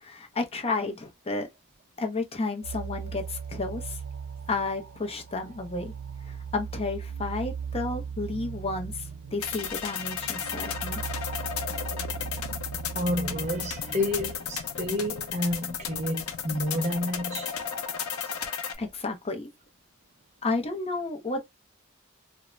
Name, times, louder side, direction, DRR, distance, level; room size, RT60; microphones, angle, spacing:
voice 1, 0.0-1.5 2.0-4.0 4.5-5.9 6.2-11.0 18.2-18.4 18.8-19.5 20.4-21.4, left 3 dB, 30° left, 0.6 m, -32 dB
sound 1, 2.6-14.3, right 6 dB, 75° right, 0.7 m, -38 dB
sound 2, 9.4-18.8, left 7 dB, 85° left, 0.5 m, -34 dB
voice 2, 12.9-17.9, left 1 dB, 35° right, 0.6 m, -30 dB
2.4 x 2.1 x 3.0 m
head